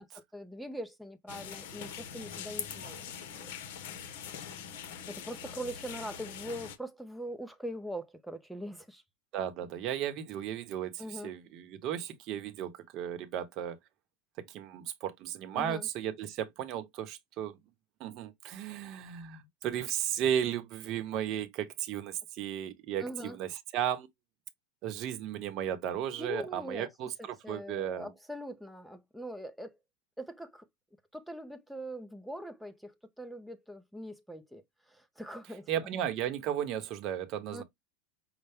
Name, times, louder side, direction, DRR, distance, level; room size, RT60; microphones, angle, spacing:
voice 1, 0.3-3.5 5.1-9.0 11.0-11.3 15.5-15.9 23.0-23.4 26.2-26.9 27.2-29.8 30.2-30.6 31.1-34.6 34.9-36.0 37.5-37.6, equal, ahead, 0.6 m, -42 dB
sound 1, 1.3-6.8, left 8 dB, 65° left, 1.0 m, -43 dB
voice 2, 9.3-13.8 14.4-17.6 18.0-24.1 24.8-28.1 35.7-37.6, right 10 dB, 35° right, 0.9 m, -35 dB
5.5 x 2.2 x 3.5 m
supercardioid pair, 160°, 0 cm